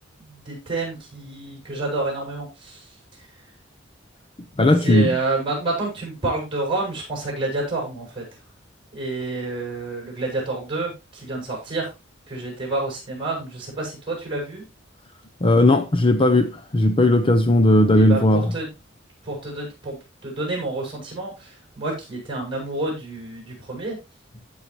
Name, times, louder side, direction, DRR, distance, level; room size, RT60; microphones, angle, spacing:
voice 1, 0.2-3.3 4.8-8.2 8.9-11.9 12.3-14.6 17.9-18.7 19.2-24.0, right 2 dB, 25° right, 7.2 m, -29 dB
voice 2, 4.6-5.1 15.4-18.5, left 1 dB, 25° left, 0.7 m, -17 dB
15.5 x 6.4 x 3.1 m
head